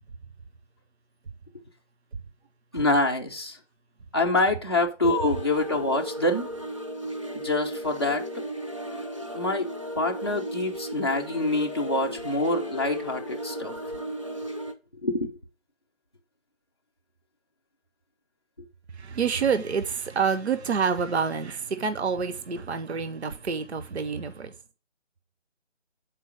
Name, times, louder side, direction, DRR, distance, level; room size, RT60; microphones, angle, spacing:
voice 1, 2.7-3.6 4.1-6.5 7.4-8.4 9.3-9.7 10.0-13.7 15.0-15.4, left 2 dB, 20° left, 0.5 m, -26 dB
sound 1, 5.0-14.7, equal, 25° right, 0.5 m, -35 dB
voice 2, 18.9-24.5, right 6 dB, 65° right, 0.7 m, -27 dB
7.0 x 4.5 x 4.9 m
figure-of-eight pair, 150°, 36 cm